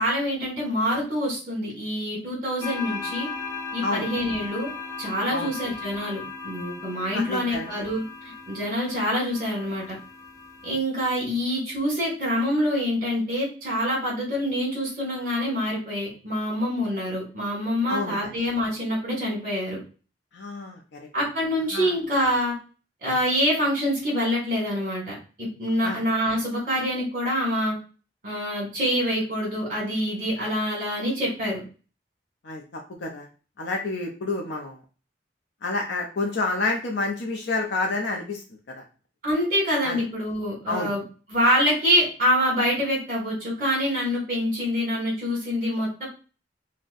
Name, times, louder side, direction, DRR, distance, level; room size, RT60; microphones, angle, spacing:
voice 1, 0.0-3.3 3.7-4.7 5.0-10.0 10.6-19.8 21.1-22.5 23.0-27.8 28.2-31.6 39.2-41.0 41.3-46.1, equal, 55° right, -3 dB, 1.6 m, -26 dB
sound 1, 2.6-10.8, left 4 dB, 20° left, 0.5 m, -37 dB
voice 2, 3.8-4.3 5.3-5.5 7.1-7.6 17.9-18.2 20.3-21.1 21.7-21.9 25.8-26.0 32.4-33.3 33.6-34.8 35.6-38.4 39.8-40.0 40.7-40.9, left 3 dB, 80° left, 0 dB, 0.6 m, -29 dB
3.9 x 2.2 x 2.5 m, 0.35 s
head